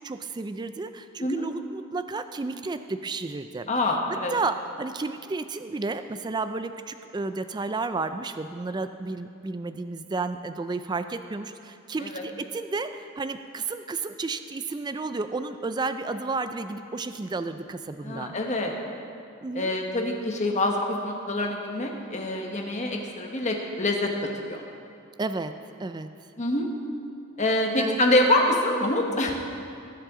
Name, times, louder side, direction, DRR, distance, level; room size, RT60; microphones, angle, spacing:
voice 1, 0.0-3.7 4.3-18.3 19.4-19.8 25.2-25.5 25.8-26.1 27.7-28.0, right 3 dB, 20° right, 10 dB, 0.3 m, -32 dB
voice 2, 3.7-4.3 12.0-12.2 18.0-18.7 19.5-24.1 24.4-24.6 26.4-26.7 27.4-29.3, left 1 dB, 35° left, 1 dB, 1.3 m, -25 dB
20.5 x 7.7 x 3.8 m, 2.6 s
head